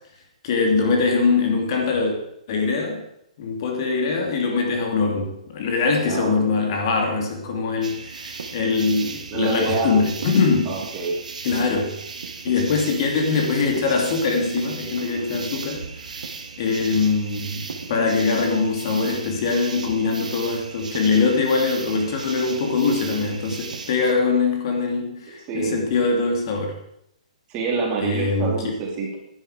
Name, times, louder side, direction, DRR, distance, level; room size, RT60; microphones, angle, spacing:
voice 1, 0.4-2.2 2.5-3.0 3.4-10.8 11.4-12.0 12.4-15.9 16.6-26.7 28.0-28.7, left 4 dB, 40° left, 2 dB, 2.6 m, -22 dB
voice 2, 5.9-6.4 9.3-10.0 10.7-11.2 25.5-25.8 27.5-29.2, right 3 dB, 20° right, -1 dB, 2.7 m, -26 dB
sound 1, 7.8-24.1, right 5 dB, 85° right, 1.8 m, -36 dB
11.5 x 10.0 x 5.0 m, 0.78 s
hypercardioid pair, 160°, 4 cm